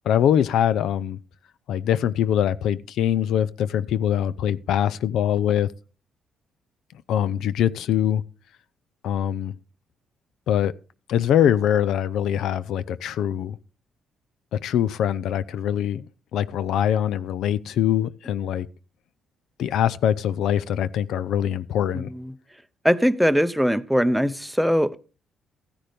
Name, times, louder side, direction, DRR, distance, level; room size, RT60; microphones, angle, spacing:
voice 1, 0.1-1.2 1.7-5.7 7.1-8.2 9.0-9.5 10.5-10.7 11.1-13.6 14.5-16.1 16.3-18.7 19.6-22.1, left 10 dB, 80° left, 0.5 m, -23 dB
voice 2, 21.9-22.3 22.8-25.0, equal, ahead, 0.6 m, -21 dB
14.5 x 9.9 x 3.4 m
cardioid pair, 90°, 0 cm